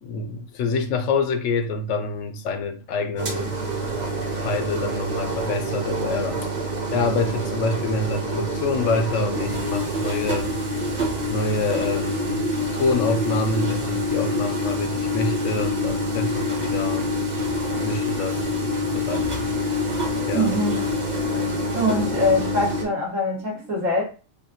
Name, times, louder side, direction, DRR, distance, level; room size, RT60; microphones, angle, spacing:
voice 1, 0.0-3.5 4.4-6.4 6.9-10.5 11.3-12.5 12.7-17.1 17.5-19.5 20.3-20.5, left 3 dB, 80° left, 1.0 m, -26 dB
sound 1, 3.2-22.8, left 1 dB, 40° right, 0.9 m, -26 dB
voice 2, 20.3-20.8 21.7-24.0, left 1 dB, 85° right, 1.9 m, -23 dB
5.4 x 2.1 x 2.8 m
omnidirectional pair, 1.3 m